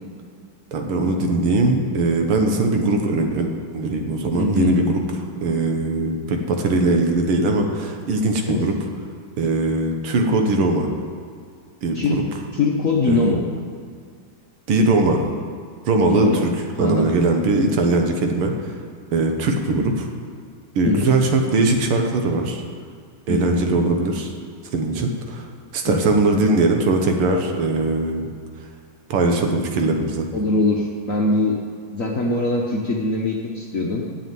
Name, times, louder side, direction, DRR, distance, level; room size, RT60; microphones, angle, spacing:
voice 1, 0.7-8.7 9.4-10.9 11.8-12.2 13.1-13.3 14.7-15.2 15.9-16.5 16.8-18.8 19.1-20.1 20.8-22.6 23.3-24.3 24.7-25.5 25.7-28.3 29.1-30.3, right 2 dB, 85° right, 3 dB, 2.0 m, -20 dB
voice 2, 4.4-4.7 8.5-8.6 11.9-12.2 12.5-13.4 16.1-16.4 16.8-17.1 20.8-21.1 23.3-23.6 25.9-26.1 30.3-31.6 31.9-34.0, left 2 dB, 50° left, -1 dB, 1.1 m, -22 dB
8.8 x 7.8 x 9.2 m, 2.1 s
omnidirectional pair, 2.4 m